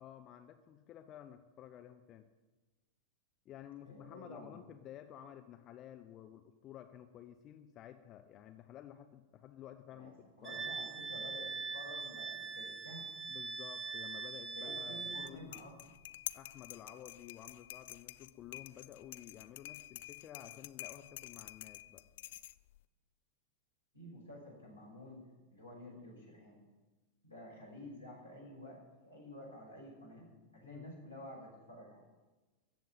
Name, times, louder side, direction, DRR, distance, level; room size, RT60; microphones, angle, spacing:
voice 1, 0.0-2.3 3.4-10.2 10.4-10.9 13.3-15.5 16.3-22.0 30.6-30.9, left 10 dB, 35° left, 7 dB, 0.8 m, -53 dB
voice 2, 3.8-4.6 9.9-10.1 10.4-13.1 14.6-15.9 23.9-26.6 27.2-32.0, left 1 dB, 85° left, -3 dB, 5.6 m, -51 dB
Wind instrument woodwind instrument, 10.4-15.3, right 4 dB, 25° right, 0.7 m, -42 dB
sound 1, 15.1-22.8, left 15 dB, 55° left, 0.4 m, -49 dB
14.5 x 7.6 x 9.2 m, 1.2 s
figure-of-eight pair, 90°, 0 cm